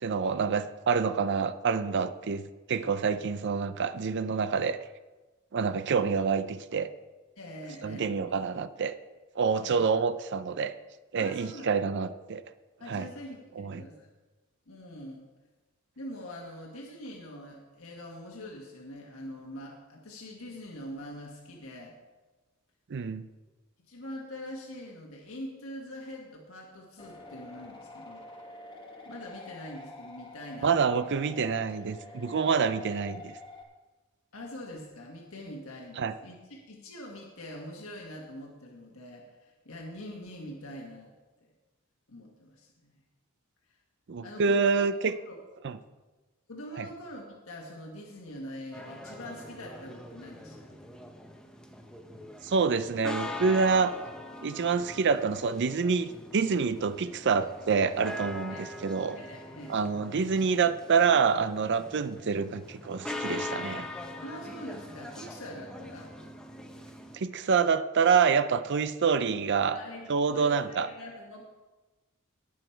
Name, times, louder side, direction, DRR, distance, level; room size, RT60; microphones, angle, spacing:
voice 1, 0.0-2.4 2.7-4.8 5.5-6.9 7.8-8.9 9.4-10.7 11.1-12.4 12.9-13.1 13.6-13.8 22.9-23.2 30.6-33.3 36.0-36.1 44.1-45.2 45.6-45.8 46.8-46.9 52.4-53.9 54.4-59.2 59.7-63.9 67.1-69.8 70.1-70.9, right 5 dB, 55° right, 12 dB, 0.5 m, -27 dB
voice 2, 7.4-8.1 8.5-8.7 9.6-9.8 11.1-11.7 12.8-14.1 14.7-15.2 16.0-21.9 23.8-28.2 29.0-31.0 34.3-41.1 42.1-42.9 44.2-44.9 45.2-45.4 46.5-50.8 52.1-52.3 58.5-58.6 59.1-59.7 64.2-66.1 69.7-71.5, left 1 dB, 75° left, 0 dB, 1.5 m, -44 dB
sound 1, 27.0-33.6, left 2 dB, 20° left, 1.4 m, -47 dB
sound 2, 48.7-67.2, left 1 dB, 5° left, 0.9 m, -42 dB
18.5 x 6.4 x 4.5 m, 1.2 s
head